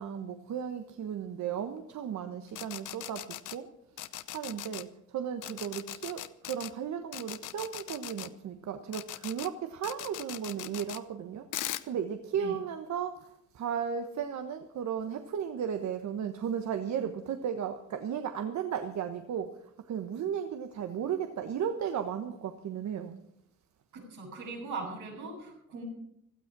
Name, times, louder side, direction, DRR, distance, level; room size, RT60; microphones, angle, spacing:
voice 1, 0.0-3.7 4.3-11.5 11.8-23.2, right 8 dB, 65° right, 1.3 m, -35 dB
sound 1, 2.5-3.6 4.0-4.8 5.4-6.7 7.1-8.3 8.9-9.5 9.8-11.0 11.5-11.8, left 14 dB, 85° left, 0.9 m, -39 dB
voice 2, 23.9-25.8, right 3 dB, 85° right, 7.3 m, -40 dB
17.0 x 13.0 x 6.1 m
cardioid pair, 90°, 30 cm